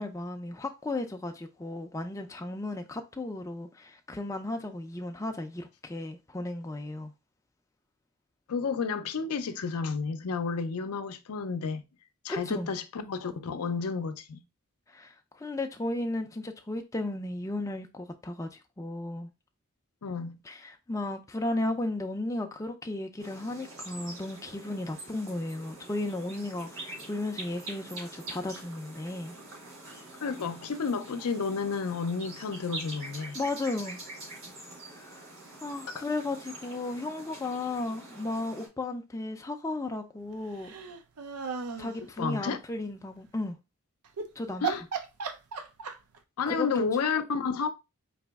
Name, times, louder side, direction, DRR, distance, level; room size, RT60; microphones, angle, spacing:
voice 1, 0.0-7.1 12.3-12.7 14.9-19.3 20.4-29.3 33.3-34.0 34.9-35.3 35.6-40.7 41.8-43.6 44.4-44.7 46.5-46.7, left 2 dB, 15° left, 0.4 m, -35 dB
voice 2, 8.5-11.8 12.2-14.4 20.0-20.4 30.2-33.4 36.0-36.1 42.2-42.6 44.6-44.8 46.4-47.7, left 5 dB, 80° left, 0.5 m, -31 dB
sound 1, 23.2-38.7, right 2 dB, 70° right, 2.3 m, -45 dB
sound 2, 40.6-42.0 44.0-44.3 44.6-46.2, right 6 dB, 85° right, 0.6 m, -35 dB
4.1 x 2.9 x 3.4 m
head